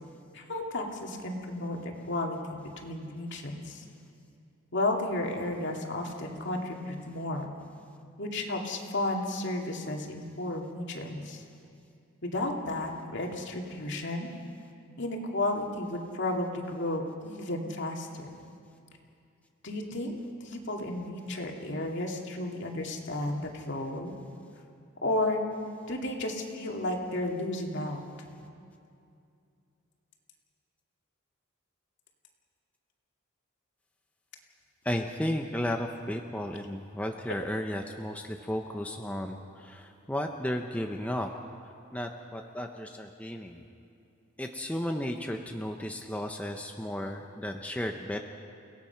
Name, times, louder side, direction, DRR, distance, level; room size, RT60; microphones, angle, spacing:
voice 1, 0.3-1.8 2.1-3.8 4.7-7.5 8.2-11.4 12.2-14.3 15.0-18.3 19.6-24.1 25.0-25.4 25.9-28.0 37.3-37.4, left 1 dB, 60° left, 1 dB, 2.5 m, -33 dB
voice 2, 34.8-41.3 41.9-43.6 44.4-48.2, left 1 dB, 5° left, 3 dB, 0.8 m, -34 dB
30.0 x 17.5 x 5.9 m, 2.5 s
head